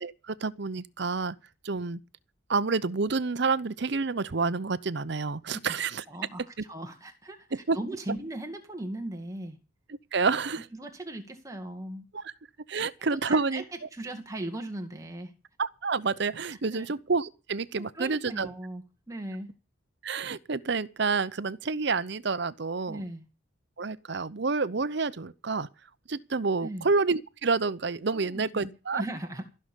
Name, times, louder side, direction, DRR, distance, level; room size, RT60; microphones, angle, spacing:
voice 1, 0.0-1.3 1.6-2.0 2.5-6.0 7.5-7.8 10.1-10.7 12.2-12.3 12.7-13.6 15.6-18.5 20.0-23.0 23.8-25.7 26.1-29.0, right 4 dB, 55° right, 0.7 m, -28 dB
voice 2, 6.1-9.6 10.7-12.1 12.7-12.8 13.1-13.6 13.9-15.3 16.7-16.9 17.9-19.5 22.9-23.2 26.6-26.9 28.1-29.5, right 1 dB, 15° right, 2.1 m, -38 dB
15.0 x 6.6 x 9.9 m
head